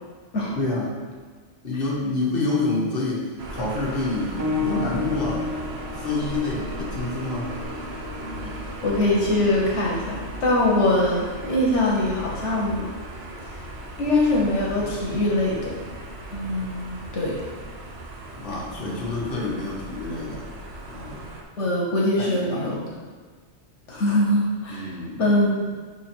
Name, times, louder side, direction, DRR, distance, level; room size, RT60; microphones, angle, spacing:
voice 1, 0.6-1.0 1.6-5.4 6.0-7.5 18.3-20.5 20.9-21.2 22.2-22.8 24.7-25.2, left 2 dB, 50° left, -4 dB, 1.4 m, -28 dB
sound 1, 3.4-21.4, right 1 dB, 65° right, 1.1 m, -37 dB
sound 2, 4.4-14.6 15.6-15.7 16.4-16.5, left 4 dB, 20° right, 0.7 m, -35 dB
voice 2, 8.8-12.9 14.0-15.8 16.3-17.4 21.6-22.8 23.9-25.7, left 1 dB, 80° left, -3 dB, 1.4 m, -23 dB
5.7 x 4.5 x 4.4 m, 1.5 s
omnidirectional pair, 1.2 m